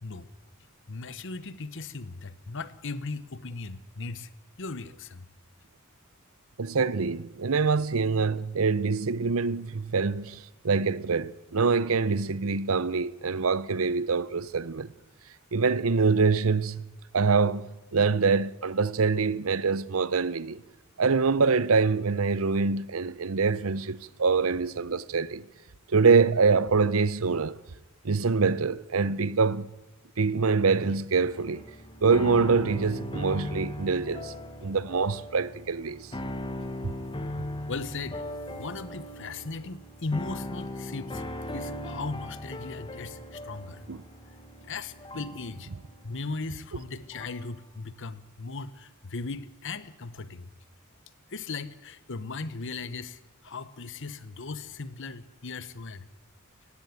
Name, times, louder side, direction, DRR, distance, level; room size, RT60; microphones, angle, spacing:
voice 1, 0.9-4.3 4.6-5.3 37.7-38.2 38.5-41.2 41.5-43.8 44.6-45.7 46.0-50.5 51.3-56.0, left 3 dB, 60° left, 1.1 m, -37 dB
voice 2, 6.6-14.9 15.5-16.8 17.1-20.6 21.0-25.5 25.9-27.6 28.0-29.7 30.2-31.6 32.0-34.3 34.6-36.1 43.9-44.0, right 4 dB, 75° right, 0.8 m, -25 dB
sound 1, 31.2-47.5, left 1 dB, 25° left, 1.5 m, -39 dB
17.5 x 16.5 x 9.4 m
head